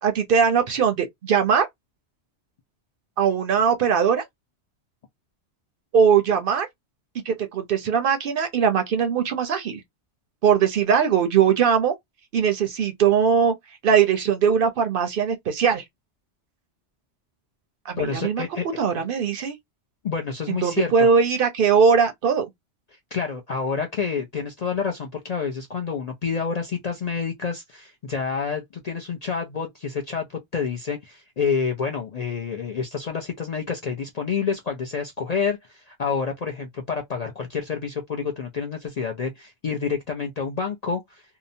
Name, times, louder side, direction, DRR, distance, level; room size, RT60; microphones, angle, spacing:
voice 1, 0.0-1.7 3.2-4.2 5.9-6.7 7.3-9.8 10.4-11.9 12.3-13.5 13.8-15.8 17.9-18.4 18.8-19.6 20.5-22.5, right 6 dB, 60° right, 0.7 m, -20 dB
voice 2, 18.0-18.7 20.0-21.1 23.1-41.2, left 5 dB, 55° left, 0.4 m, -28 dB
2.7 x 2.0 x 2.6 m
omnidirectional pair, 1.2 m